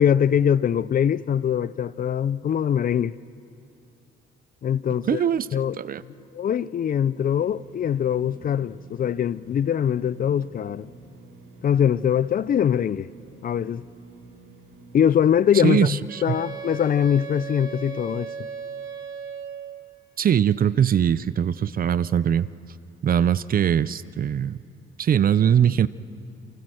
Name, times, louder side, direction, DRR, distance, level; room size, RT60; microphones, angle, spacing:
voice 1, 0.0-3.1 4.6-5.2 5.5-5.8 6.3-10.9 11.6-13.1 13.4-13.8 14.9-18.3, left 9 dB, 45° left, 0.5 m, -22 dB
voice 2, 5.1-5.5 5.8-6.0 15.6-16.4 20.2-22.5 23.0-24.6 25.0-25.9, right 9 dB, 45° right, 0.6 m, -21 dB
sound 1, 7.1-15.1, right 3 dB, 90° right, 7.1 m, -49 dB
Wind instrument woodwind instrument, 16.1-19.8, right 7 dB, 70° right, 3.1 m, -36 dB
28.5 x 24.0 x 6.4 m
cardioid pair, 90°, 20 cm